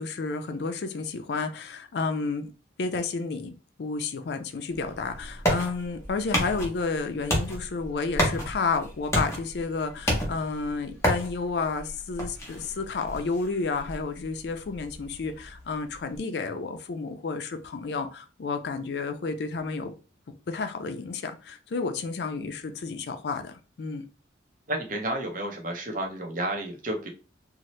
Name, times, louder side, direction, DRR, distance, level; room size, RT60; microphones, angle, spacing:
voice 1, 0.0-2.5 2.8-3.5 3.8-19.9 20.5-24.0, left 4 dB, 60° left, 7 dB, 0.4 m, -31 dB
sound 1, 4.7-16.2, equal, 15° left, 0.7 m, -32 dB
voice 2, 24.7-27.1, right 1 dB, 45° right, 2 dB, 0.6 m, -31 dB
2.7 x 2.0 x 3.0 m, 0.34 s
head